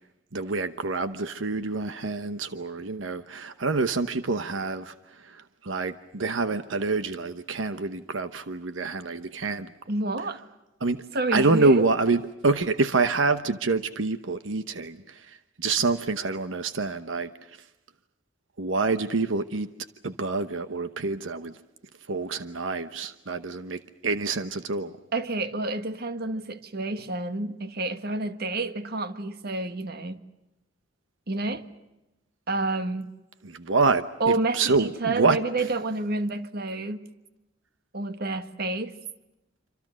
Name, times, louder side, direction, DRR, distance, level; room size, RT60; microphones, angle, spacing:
voice 1, 0.3-4.9 5.2-5.4 5.6-9.7 10.8-11.0 11.3-17.3 18.6-19.7 20.0-21.5 22.1-25.0 33.4-35.4, right 3 dB, 90° right, 1.0 m, -26 dB
voice 2, 9.9-10.4 11.1-11.8 25.1-30.2 31.3-31.7 32.5-33.1 34.2-37.1 37.9-39.0, right 2 dB, 55° right, 1.5 m, -29 dB
27.0 x 26.0 x 6.3 m
head